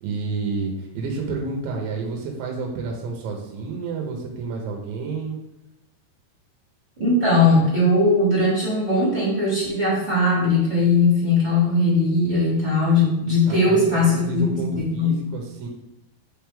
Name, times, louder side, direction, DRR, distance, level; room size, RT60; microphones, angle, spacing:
voice 1, 0.0-5.4 13.5-15.7, right 4 dB, 85° right, 1 dB, 3.3 m, -30 dB
voice 2, 7.0-15.1, left 2 dB, 15° right, -7 dB, 1.6 m, -19 dB
8.2 x 4.6 x 3.5 m, 0.92 s
omnidirectional pair, 5.1 m